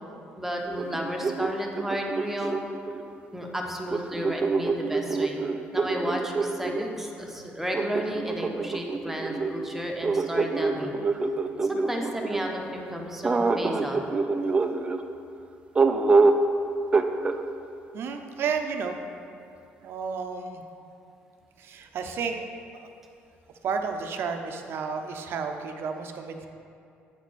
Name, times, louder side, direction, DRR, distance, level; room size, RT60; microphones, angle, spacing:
voice 1, 0.4-2.6 3.3-5.5 5.7-10.9 11.6-14.0, equal, 5° right, 0 dB, 1.0 m, -33 dB
sound 1, 0.7-3.1 3.9-6.9 7.7-12.5 13.2-15.0 15.8-16.5 16.9-17.4, right 3 dB, 25° right, 0.5 m, -26 dB
voice 2, 14.4-14.9 17.9-19.0 19.8-20.6 21.6-22.4 22.7-22.9 23.6-26.5, right 5 dB, 60° right, 5 dB, 0.7 m, -32 dB
7.9 x 4.2 x 6.2 m, 2.6 s
cardioid pair, 90°, 4 cm